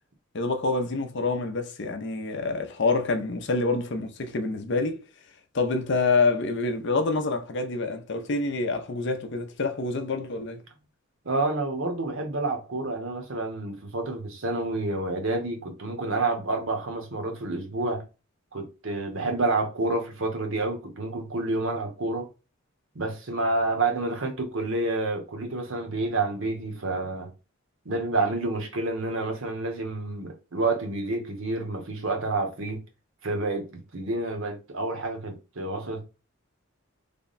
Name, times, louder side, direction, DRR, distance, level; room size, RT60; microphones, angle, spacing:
voice 1, 0.3-5.0 5.5-10.6, left 3 dB, 55° left, 0.6 m, -27 dB
voice 2, 11.2-18.0 18.5-22.3 22.9-27.3 27.8-32.8 33.2-36.0, right 2 dB, 65° right, 0.9 m, -29 dB
3.4 x 2.2 x 4.0 m
head